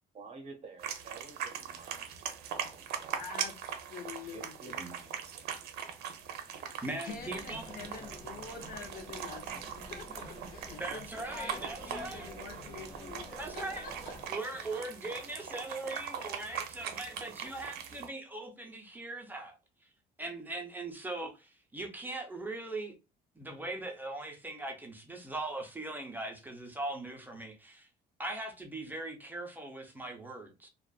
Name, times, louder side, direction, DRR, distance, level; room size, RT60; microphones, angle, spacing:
voice 1, 0.1-2.4 2.7-3.3 4.2-5.5, right 3 dB, 40° right, 0.9 m, -50 dB
sound 1, 0.8-18.1, right 8 dB, 70° right, 0.5 m, -41 dB
voice 2, 3.2-3.6 3.9-4.8 7.0-13.3 13.5-14.2, left 5 dB, 60° left, 0.7 m, -46 dB
voice 3, 6.8-7.7 10.8-12.4 13.0-13.9 14.3-19.5 20.2-22.9 23.4-27.9 28.2-30.7, right 2 dB, 10° right, 0.6 m, -40 dB
sound 2, 7.1-14.3, equal, 30° left, 1.1 m, -49 dB
2.4 x 2.4 x 2.2 m
cardioid pair, 110°, 17 cm